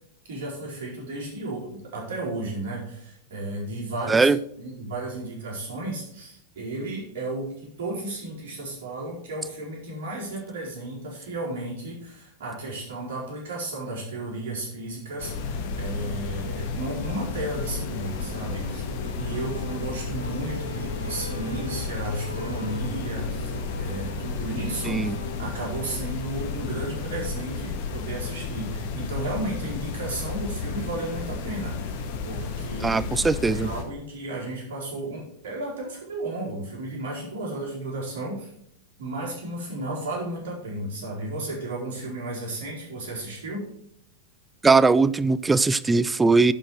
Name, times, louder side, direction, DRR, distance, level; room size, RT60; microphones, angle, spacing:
voice 1, 0.3-4.3 4.6-18.9 19.2-33.0 33.4-38.5 39.0-43.6, right 2 dB, 55° right, -4 dB, 4.4 m, -33 dB
sound 1, 15.2-33.8, left 4 dB, 50° left, 1.5 m, -32 dB
sound 2, 17.6-26.0, equal, 85° right, 2.4 m, -40 dB
voice 2, 24.8-25.2 32.8-33.7 44.6-46.5, right 4 dB, 10° right, 19 dB, 0.4 m, -20 dB
11.0 x 5.1 x 6.1 m, 0.68 s
figure-of-eight pair, 90°, 0 cm